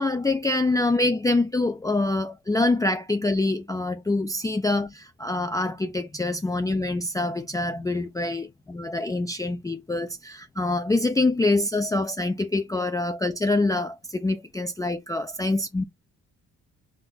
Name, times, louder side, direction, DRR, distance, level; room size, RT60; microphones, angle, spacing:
voice 1, 0.0-15.8, left 2 dB, 10° left, 0.5 m, -25 dB
3.7 x 3.3 x 4.0 m
cardioid pair, 90°, 30 cm